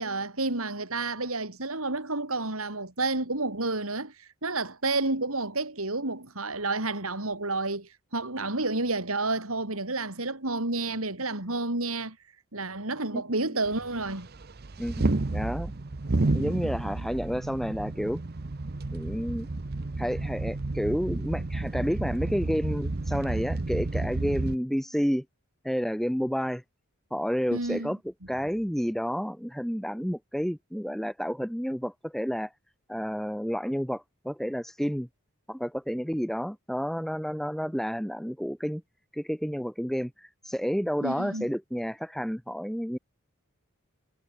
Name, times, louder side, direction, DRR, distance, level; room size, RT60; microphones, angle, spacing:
voice 1, 0.0-12.2 12.5-14.3 27.5-27.9 41.0-41.5, right 2 dB, 80° right, 5.0 m, -30 dB
sound 1, 13.6-24.6, right 2 dB, 45° right, 0.8 m, -31 dB
voice 2, 14.8-15.7 16.3-18.2 18.9-19.5 20.0-25.2 25.6-26.6 27.1-28.0 28.3-32.5 32.9-35.1 35.5-38.8 39.1-43.0, equal, ahead, 4.7 m, -30 dB
head